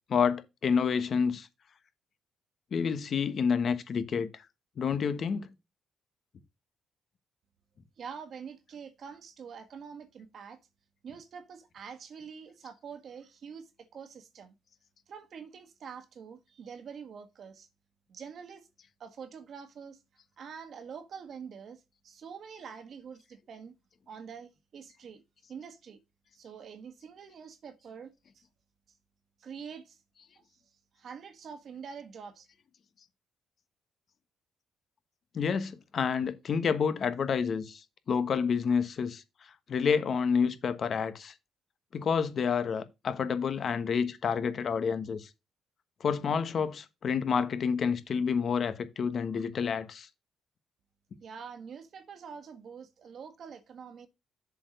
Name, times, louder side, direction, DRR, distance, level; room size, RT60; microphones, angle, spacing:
voice 1, 0.1-1.5 2.7-4.3 4.8-5.5 35.3-39.2 39.7-41.3 41.9-45.3 46.0-50.1, left 6 dB, 55° left, 1.1 m, -29 dB
voice 2, 8.0-10.6 11.0-14.5 15.1-17.7 18.1-18.7 19.0-20.0 20.4-23.7 24.1-25.2 25.5-26.0 26.3-28.4 29.4-30.0 30.4-30.5 30.9-32.5 51.2-54.1, right 6 dB, 60° right, 1.6 m, -46 dB
7.2 x 4.5 x 6.4 m
cardioid pair, 90°, 0 cm